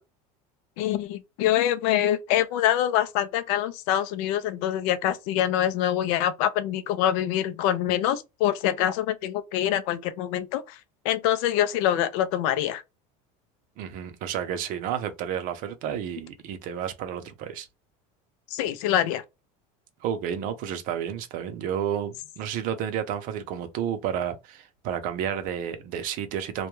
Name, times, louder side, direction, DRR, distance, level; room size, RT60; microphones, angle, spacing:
voice 1, 0.8-10.8 11.0-12.8 18.5-19.2, left 11 dB, 80° left, 0.5 m, -25 dB
voice 2, 13.8-17.7 20.0-26.7, right 9 dB, 55° right, 0.5 m, -31 dB
2.3 x 2.1 x 3.0 m
cardioid pair, 145°, 17 cm